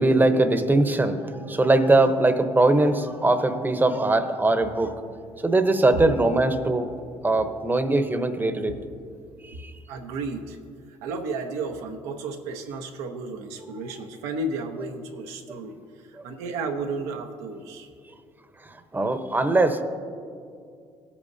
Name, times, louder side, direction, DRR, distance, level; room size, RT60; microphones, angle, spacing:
voice 1, 0.0-4.9 5.4-6.9 7.2-8.8 9.4-9.7 16.2-16.3 18.6-19.8, right 2 dB, 15° right, 9 dB, 0.9 m, -21 dB
voice 2, 9.9-10.6 11.0-15.8 16.1-17.9, right 3 dB, 90° right, 4 dB, 0.9 m, -33 dB
17.5 x 8.6 x 2.7 m, 2.4 s
supercardioid pair, 75°, 11 cm